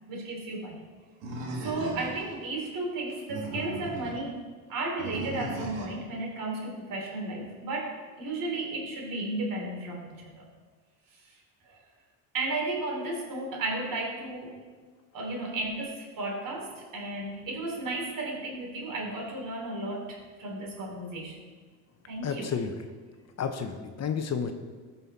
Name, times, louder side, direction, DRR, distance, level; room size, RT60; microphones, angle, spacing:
voice 1, 0.1-0.8 1.5-4.4 4.7-10.5 11.6-11.8 12.3-14.6 15.1-21.4 22.0-22.5, right 2 dB, 60° right, 0 dB, 3.3 m, -34 dB
Animal, 1.2-2.4 3.1-4.2 5.0-6.0, right 2 dB, 80° right, 2.6 m, -37 dB
voice 2, 22.2-22.7 23.4-24.5, left 6 dB, 45° left, 7 dB, 1.0 m, -31 dB
15.0 x 5.7 x 4.2 m, 1.5 s
supercardioid pair, 80°, 38 cm